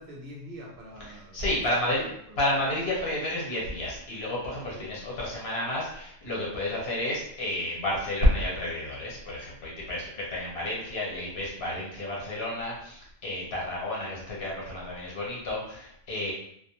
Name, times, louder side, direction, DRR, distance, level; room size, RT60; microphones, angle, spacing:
voice 1, 0.0-1.6 1.9-2.4 4.7-4.9, equal, 65° right, -2 dB, 0.8 m, -45 dB
voice 2, 1.1-2.1 2.4-16.3, left 1 dB, 75° left, -4 dB, 1.1 m, -30 dB
2.5 x 2.1 x 2.8 m, 0.71 s
omnidirectional pair, 1.1 m